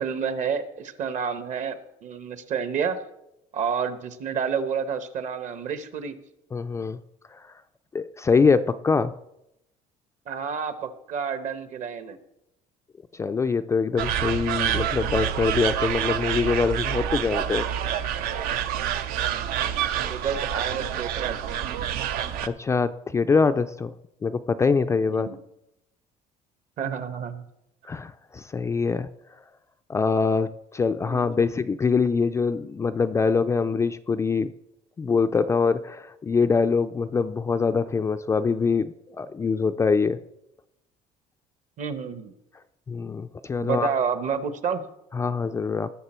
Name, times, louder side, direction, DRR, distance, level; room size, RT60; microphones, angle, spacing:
voice 1, 0.0-3.0 3.5-6.1 10.3-12.2 19.3-21.4 21.6-21.8 25.1-25.4 26.8-27.5 31.0-31.5 41.8-42.3 43.6-44.8, right 6 dB, 50° right, 11 dB, 1.1 m, -30 dB
voice 2, 6.5-7.0 7.3-7.4 7.9-9.1 13.1-17.7 22.5-23.9 24.2-25.3 27.9-29.1 29.9-34.5 35.0-40.2 42.9-43.9 45.1-45.9, left 5 dB, 20° left, 9 dB, 0.3 m, -24 dB
sound 1, 14.0-22.5, right 10 dB, 75° right, 0.7 m, -27 dB
19.0 x 6.6 x 4.4 m, 0.85 s
cardioid pair, 145°, 16 cm